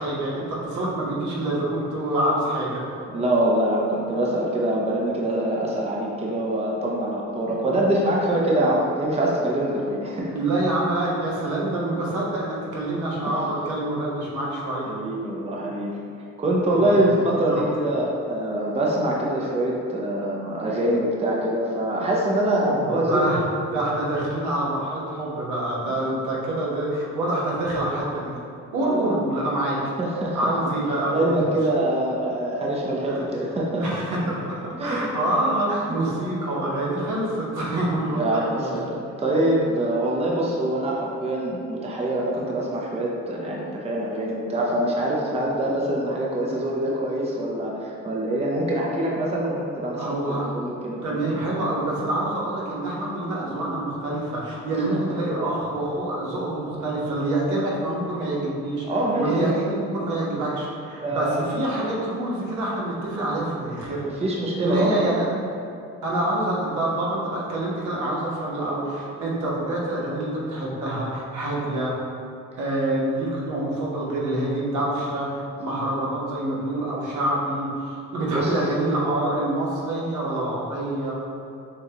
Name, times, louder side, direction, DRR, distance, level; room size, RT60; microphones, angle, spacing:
voice 1, 0.0-2.8 10.3-15.0 16.7-17.0 17.5-17.6 22.6-28.4 28.7-29.8 30.3-31.5 33.0-33.2 33.8-38.9 50.0-50.5 51.0-58.8 59.2-64.2 64.6-65.3 66.0-71.9 72.6-81.1, right 1 dB, 80° right, -6 dB, 1.2 m, -26 dB
voice 2, 3.1-10.3 14.9-15.9 16.4-23.4 28.8-29.1 30.0-30.5 31.1-33.8 34.8-35.1 38.1-38.9 39.2-51.4 58.8-59.8 61.0-61.5 64.2-65.1 78.3-78.5, right 1 dB, 20° right, -3 dB, 0.6 m, -24 dB
6.7 x 2.3 x 2.9 m, 2.6 s
cardioid pair, 90°, 30 cm